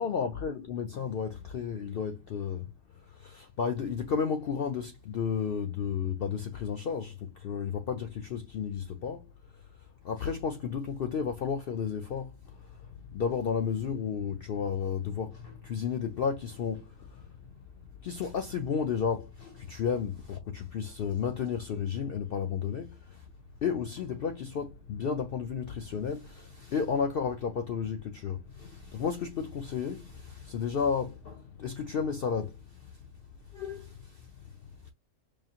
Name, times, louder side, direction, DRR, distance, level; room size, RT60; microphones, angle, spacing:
voice 1, 0.0-17.6 18.0-23.3 23.6-33.1 33.5-34.9, left 6 dB, 75° left, 0.5 m, -33 dB
4.9 x 2.4 x 2.8 m
omnidirectional pair, 1.5 m